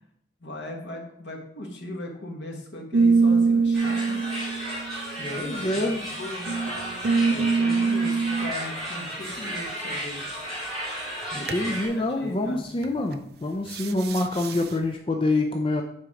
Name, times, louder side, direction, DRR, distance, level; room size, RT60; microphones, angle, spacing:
voice 1, 0.4-4.2 5.2-6.5 7.3-10.2 11.3-12.6, left 1 dB, 70° left, 1 dB, 1.5 m, -38 dB
sound 1, 2.9-5.8 6.5-8.5 11.5-11.7 12.8-13.1 13.7-14.7, right 4 dB, 55° right, 0.4 m, -24 dB
sound 2, 3.7-11.9, equal, ahead, 2.4 m, -34 dB
voice 2, 5.4-6.0 11.3-15.8, left 2 dB, 30° left, 2 dB, 0.5 m, -26 dB
6.9 x 4.6 x 4.9 m, 0.72 s
head